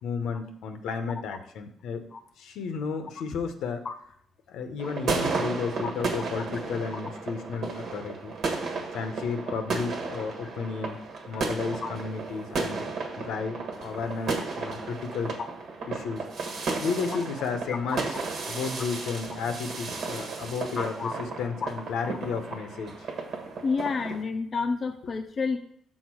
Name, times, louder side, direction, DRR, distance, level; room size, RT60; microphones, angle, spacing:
voice 1, 0.0-2.1 2.4-3.9 4.5-8.3 8.9-11.0 11.3-12.8 13.2-15.3 15.9-16.2 16.8-18.2 18.5-23.1, left 5 dB, 85° left, 7 dB, 0.9 m, -33 dB
sound 1, 4.8-24.2, right 3 dB, 65° right, 1.4 m, -34 dB
voice 2, 20.8-21.1 23.6-25.6, left 4 dB, 45° left, 6 dB, 0.6 m, -29 dB
6.4 x 3.9 x 6.2 m, 0.63 s
cardioid pair, 90°, 0 cm